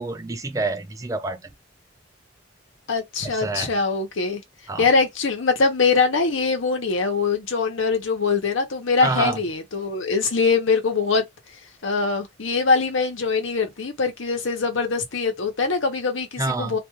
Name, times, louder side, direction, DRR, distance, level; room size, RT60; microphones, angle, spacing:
voice 1, 0.0-1.4 3.2-3.7 4.7-4.9 9.0-9.4 16.4-16.8, right 3 dB, 15° right, 0.4 m, -27 dB
voice 2, 2.9-4.4 4.8-11.3 11.8-16.8, left 4 dB, 80° left, 0.9 m, -22 dB
2.5 x 2.3 x 3.0 m
head